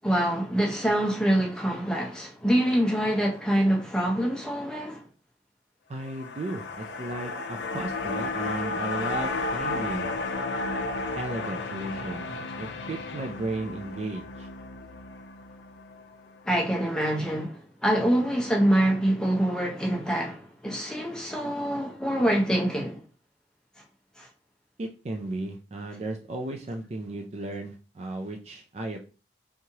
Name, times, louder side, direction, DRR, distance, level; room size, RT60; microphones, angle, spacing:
voice 1, 0.0-5.1 16.5-23.0 24.2-24.3, right 1 dB, 5° left, 0.6 m, -25 dB
voice 2, 5.9-10.1 11.2-14.5 24.8-29.0, right 2 dB, 35° right, 0.4 m, -35 dB
sound 1, 6.0-16.4 16.7-16.8, left 3 dB, 75° left, 0.4 m, -33 dB
3.4 x 3.1 x 2.8 m
head